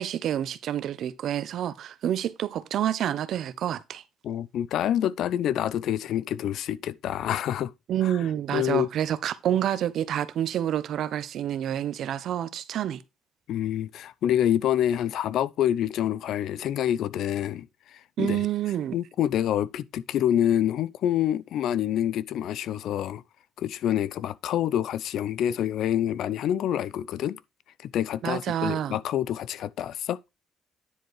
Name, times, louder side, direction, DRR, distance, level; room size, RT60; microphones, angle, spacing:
voice 1, 0.0-4.0 7.9-13.0 18.2-18.9 28.2-29.0, right 11 dB, 75° right, 0.8 m, -28 dB
voice 2, 4.2-7.7 8.0-8.1 8.5-8.9 13.5-17.7 18.2-18.4 18.9-23.2 23.6-27.4 27.8-30.2, left 11 dB, 75° left, 0.6 m, -27 dB
10.0 x 4.5 x 4.7 m
cardioid pair, 90°, 0 cm